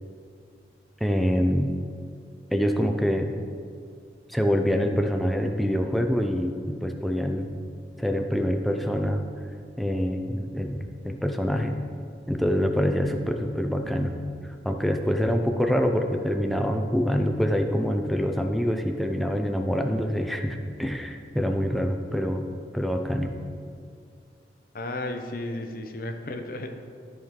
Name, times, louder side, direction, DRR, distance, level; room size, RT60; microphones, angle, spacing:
voice 1, 1.0-1.7 2.5-3.4 4.3-7.5 8.0-9.2 9.8-11.8 12.3-14.2 14.6-22.5 22.7-23.3, equal, ahead, 3 dB, 0.4 m, -25 dB
voice 2, 24.7-26.7, left 2 dB, 55° left, 6 dB, 0.6 m, -33 dB
13.0 x 4.6 x 3.7 m, 2.3 s
head